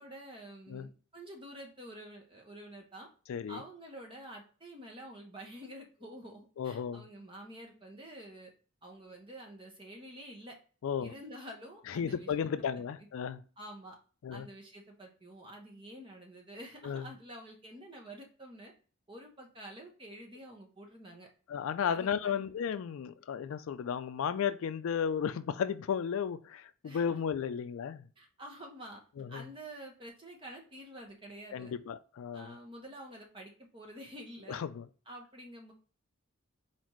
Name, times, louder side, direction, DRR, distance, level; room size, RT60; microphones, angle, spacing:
voice 1, 0.0-3.1 3.5-8.5 8.8-10.5 11.0-12.3 13.6-14.0 14.3-18.7 19.1-21.3 21.9-22.4 26.8-27.2 28.2-29.0 29.3-31.7 32.3-34.6 35.1-35.7, right 1 dB, 25° right, 1.0 m, -48 dB
voice 2, 3.3-3.6 6.6-7.0 10.8-11.1 11.9-13.4 14.2-14.5 16.8-17.1 21.5-28.0 29.2-29.5 31.5-32.6 34.5-34.9, left 7 dB, 75° left, 0.3 m, -34 dB
4.3 x 4.0 x 3.1 m
head